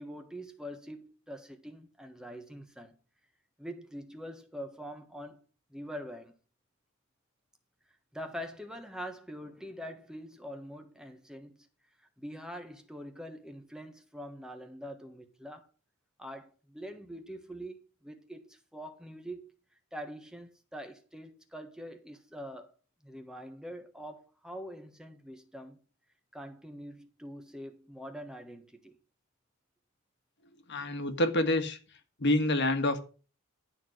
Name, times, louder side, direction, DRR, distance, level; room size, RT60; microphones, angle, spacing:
voice 1, 0.0-2.9 3.6-5.4 5.7-6.3 8.1-11.7 12.2-15.7 16.2-19.5 19.9-22.7 23.0-25.8 26.3-29.0, equal, 5° right, 1.4 m, -44 dB
voice 2, 30.7-31.8 32.2-33.0, left 1 dB, 55° left, 1.7 m, -27 dB
12.0 x 4.5 x 7.7 m
head